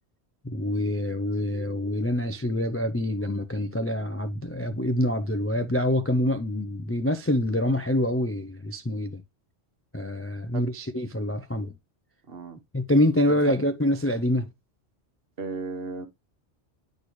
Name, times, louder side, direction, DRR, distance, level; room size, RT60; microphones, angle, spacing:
voice 1, 0.4-9.2 9.9-11.7 12.7-14.5, left 1 dB, 20° left, 0.3 m, -26 dB
voice 2, 12.2-12.6 13.3-13.7 15.4-16.1, right 4 dB, 60° right, 1.3 m, -35 dB
9.9 x 4.3 x 3.1 m
omnidirectional pair, 1.2 m